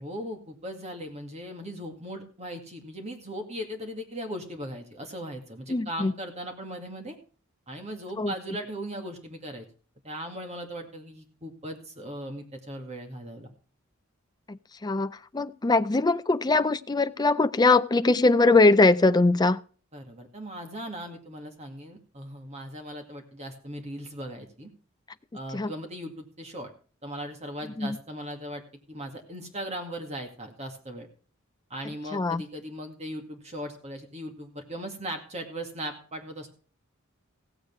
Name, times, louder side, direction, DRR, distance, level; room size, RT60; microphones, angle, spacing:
voice 1, 0.0-7.2 7.7-9.6 10.0-13.5 19.9-24.7 25.3-26.7 27.0-28.6 28.9-31.1 31.7-36.5, equal, 30° right, 4 dB, 2.2 m, -38 dB
voice 2, 5.7-6.1 8.2-8.3 14.5-19.6 25.5-25.7 27.8-28.0 32.1-32.4, left 3 dB, 20° left, 12 dB, 0.5 m, -22 dB
16.0 x 8.1 x 4.7 m, 0.40 s
head